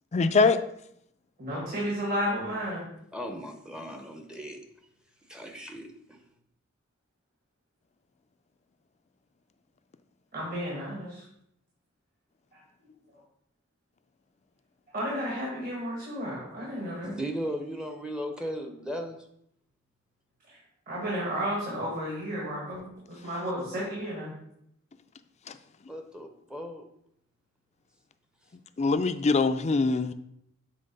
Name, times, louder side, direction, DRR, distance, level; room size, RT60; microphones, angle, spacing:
voice 1, 0.1-0.6 25.5-25.6 28.8-30.1, left 4 dB, 35° left, 10 dB, 0.4 m, -23 dB
voice 2, 1.4-2.9 10.3-11.2 14.9-17.1 20.9-24.3, equal, 45° right, -5 dB, 1.8 m, -32 dB
voice 3, 3.1-4.6 5.3-6.2 17.0-19.2 25.9-26.8, equal, 5° right, 4 dB, 0.7 m, -36 dB
7.7 x 3.4 x 5.3 m, 0.73 s
head